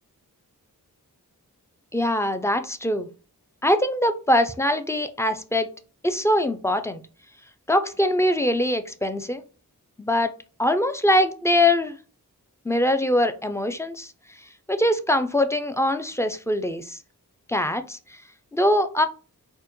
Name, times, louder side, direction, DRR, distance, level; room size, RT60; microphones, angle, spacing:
voice 1, 1.9-3.1 3.6-5.7 6.0-7.0 7.7-9.4 10.0-10.3 10.6-12.0 12.6-14.1 14.7-17.0 17.5-18.2 18.5-19.1, left 1 dB, 10° left, 9 dB, 0.4 m, -22 dB
4.4 x 2.2 x 3.0 m, 0.36 s
wide cardioid pair, 50°, 36 cm